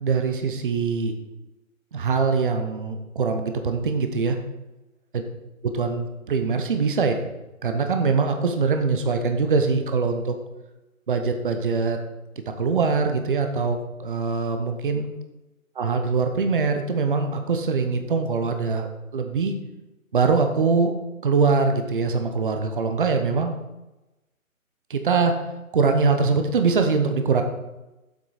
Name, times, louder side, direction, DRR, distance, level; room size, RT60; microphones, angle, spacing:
voice 1, 0.0-1.1 1.9-4.4 5.6-7.1 7.6-10.3 11.1-12.0 12.6-15.0 15.8-19.5 20.1-20.9 21.2-23.5 24.9-25.3 25.7-27.4, right 4 dB, 40° right, 6 dB, 0.8 m, -23 dB
7.8 x 6.0 x 4.8 m, 1.0 s
hypercardioid pair, 160°, 42 cm